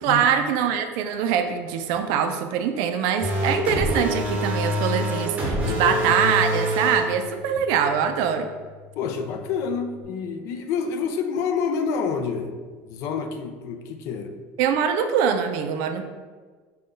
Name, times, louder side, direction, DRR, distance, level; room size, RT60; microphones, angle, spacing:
voice 1, 0.0-8.5 14.6-16.0, right 8 dB, 65° right, 7 dB, 0.4 m, -23 dB
sound 1, 3.2-7.0, equal, 20° right, 0.7 m, -25 dB
Bass guitar, 3.8-10.0, left 4 dB, 25° left, 1.3 m, -37 dB
voice 2, 5.6-6.1 9.0-12.5 12.8-14.4, left 6 dB, 50° left, 6 dB, 0.4 m, -28 dB
5.1 x 2.2 x 3.7 m, 1.5 s
cardioid pair, 175°, 6 cm